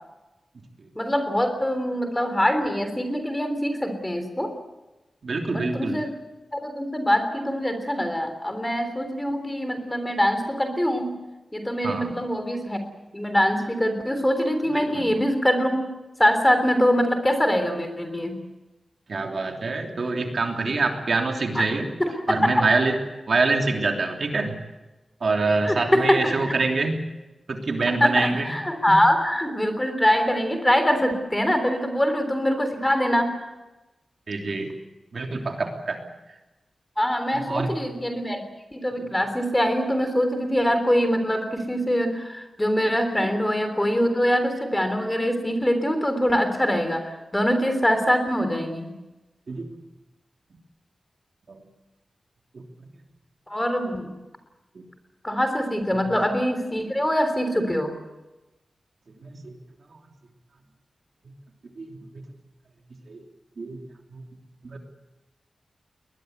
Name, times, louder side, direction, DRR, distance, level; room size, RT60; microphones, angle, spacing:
voice 1, 1.0-4.5 5.5-6.1 6.5-11.2 11.5-12.8 13.1-15.8 16.2-18.4 21.6-21.7 22.0-22.4 25.7-26.4 27.9-33.3 37.0-38.4 38.7-48.9 53.5-54.1 55.2-57.9, equal, 10° left, 7 dB, 3.5 m, -23 dB
voice 2, 5.2-6.0 11.8-12.1 14.7-15.1 19.1-21.9 22.3-23.0 23.3-24.6 25.2-27.0 27.5-28.5 34.3-34.7 35.1-36.0 37.3-37.7 39.0-39.1 43.2-43.3 49.5-49.7 51.5-51.6 52.5-52.6 54.7-54.8 55.9-56.1 59.2-59.6 61.8-62.0 63.1-63.2 63.6-63.8 64.1-64.2 64.6-64.8, right 3 dB, 55° right, 3 dB, 3.1 m, -25 dB
21.0 x 21.0 x 8.2 m, 1.1 s
wide cardioid pair, 145°, 0 cm